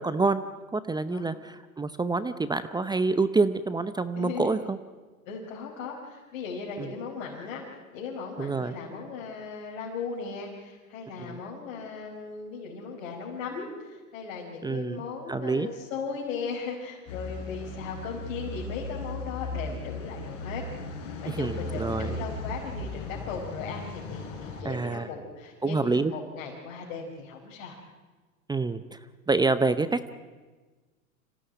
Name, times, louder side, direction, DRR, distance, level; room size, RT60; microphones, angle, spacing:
voice 1, 0.0-4.8 6.8-6.9 8.4-8.7 11.2-11.4 14.6-15.7 21.2-22.1 24.6-25.1 25.6-26.1 28.5-29.0 29.3-30.1, right 3 dB, 10° right, 12 dB, 0.7 m, -27 dB
voice 2, 4.2-4.5 5.3-7.6 7.9-20.7 21.2-27.8, left 5 dB, 60° left, -3 dB, 4.8 m, -37 dB
sound 1, 17.1-24.6, left 2 dB, 45° left, 5.5 m, -37 dB
26.0 x 16.5 x 9.2 m, 1.3 s
hypercardioid pair, 105°, 43 cm